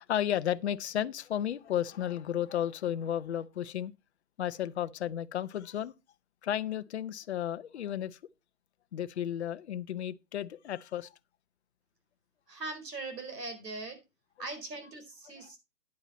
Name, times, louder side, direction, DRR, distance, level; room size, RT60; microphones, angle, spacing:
voice 1, 0.1-3.9 4.4-5.9 6.4-8.2 8.9-11.1 15.4-15.5, left 10 dB, 45° left, 0.6 m, -33 dB
voice 2, 12.5-14.0 14.4-15.6, right 2 dB, 80° right, 4.4 m, -40 dB
9.8 x 9.0 x 4.1 m
hypercardioid pair, 150°, 48 cm